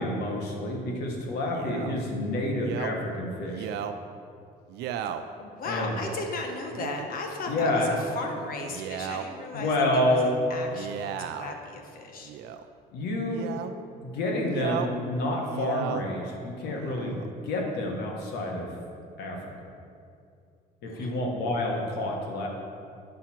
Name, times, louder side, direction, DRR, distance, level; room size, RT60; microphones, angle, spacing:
voice 1, 0.0-3.7 5.6-5.9 7.5-7.9 9.5-10.3 12.9-13.5 14.0-17.2 17.4-18.7 19.2-19.4 20.8-22.5, left 1 dB, 80° left, 0 dB, 1.6 m, -28 dB
Male speech man speaking, 1.5-1.9 2.6-2.9 3.5-4.0 4.7-5.2 6.0-6.2 6.7-7.1 7.5-8.1 8.6-9.2 10.6-11.6 12.2-12.7 13.3-13.7 14.4-14.9 15.4-16.0 16.7-17.3, right 10 dB, 80° right, 0.5 m, -35 dB
voice 2, 5.4-12.3 20.9-21.1, left 3 dB, 60° left, 3 dB, 1.3 m, -36 dB
9.4 x 5.8 x 4.4 m, 2.5 s
cardioid pair, 110°, 17 cm